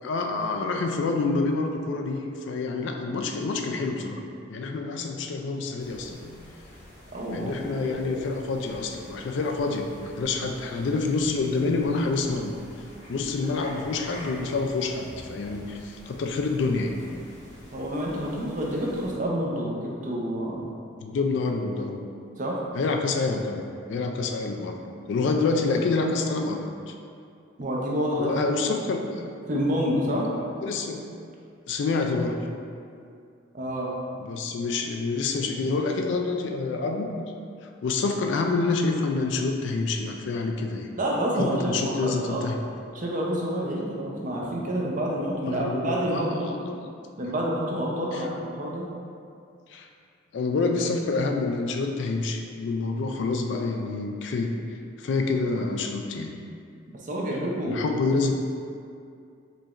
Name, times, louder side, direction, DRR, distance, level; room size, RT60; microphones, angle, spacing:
voice 1, 0.0-4.2 4.5-6.4 7.3-12.6 13.1-17.0 21.0-22.0 22.7-24.8 25.1-26.6 26.9-27.0 28.2-29.0 30.6-31.0 31.7-32.4 34.2-37.1 37.8-40.9 41.3-42.5 45.4-46.7 48.1-48.3 49.7-49.9 50.3-54.6 55.0-56.3 57.7-58.3, left 3 dB, 60° left, 3 dB, 0.3 m, -27 dB
sound 1, 5.8-19.1, left 1 dB, 35° left, 0.8 m, -47 dB
voice 2, 7.1-8.2 17.7-20.7 22.4-22.6 27.6-28.9 29.5-30.3 33.5-33.9 41.0-42.4 42.9-46.5 47.2-48.8 57.0-57.9, equal, 40° right, -3 dB, 0.5 m, -28 dB
4.9 x 2.9 x 2.5 m, 2.4 s
head